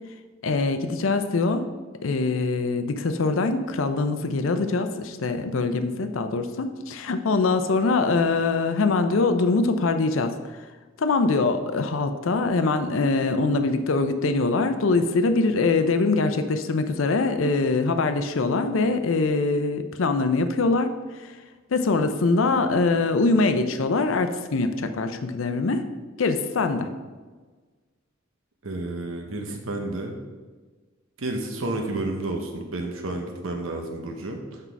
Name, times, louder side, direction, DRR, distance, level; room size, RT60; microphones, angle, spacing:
voice 1, 0.4-1.7 2.0-10.3 11.0-20.9 21.2-21.3 21.7-25.8 26.2-26.9, left 3 dB, 75° left, 8 dB, 0.5 m, -23 dB
voice 2, 28.6-30.2 31.2-34.6, right 2 dB, 80° right, 3 dB, 0.8 m, -31 dB
6.1 x 5.5 x 4.5 m, 1.4 s
head